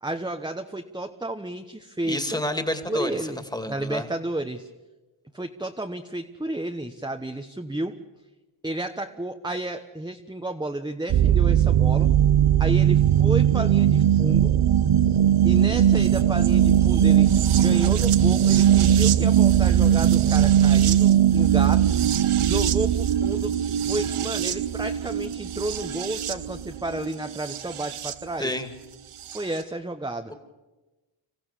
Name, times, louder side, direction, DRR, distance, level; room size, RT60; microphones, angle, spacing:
voice 1, 0.0-2.4 2.9-4.7 5.3-8.0 8.6-12.1 12.6-14.5 15.4-21.9 22.3-23.6 23.9-28.5 29.3-30.3, right 1 dB, 10° right, 5 dB, 1.1 m, -32 dB
voice 2, 2.0-3.1 3.5-4.0 28.4-28.7, left 1 dB, 10° left, 7 dB, 2.5 m, -28 dB
sound 1, 11.1-28.1 29.3-29.4, right 10 dB, 80° right, 0.9 m, -20 dB
27.0 x 15.0 x 8.4 m, 1.1 s
cardioid pair, 55°, 49 cm